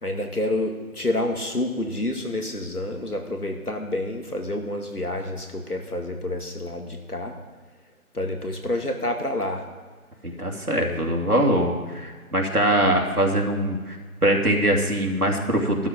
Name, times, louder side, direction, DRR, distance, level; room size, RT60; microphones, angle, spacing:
voice 1, 0.0-7.3 8.1-9.7 10.7-11.0, left 1 dB, 90° left, 3 dB, 2.4 m, -28 dB
voice 2, 10.4-15.9, right 1 dB, 85° right, 1 dB, 2.8 m, -22 dB
12.5 x 12.5 x 5.2 m, 1.5 s
figure-of-eight pair, 175°, 44 cm